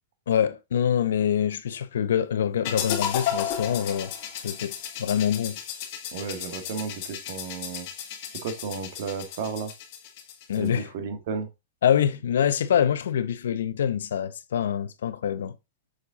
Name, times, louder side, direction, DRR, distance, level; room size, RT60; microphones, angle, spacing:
voice 1, 0.3-4.1 4.4-4.7 5.0-5.6 10.5-10.9 11.8-15.5, left 9 dB, 85° left, 0.7 m, -25 dB
sound 1, 2.6-10.7, left 9 dB, 55° left, 1.6 m, -34 dB
voice 2, 6.1-7.9 8.3-9.7 10.6-11.5, right 5 dB, 60° right, 1.6 m, -33 dB
6.5 x 4.1 x 3.6 m
hypercardioid pair, 140°, 0 cm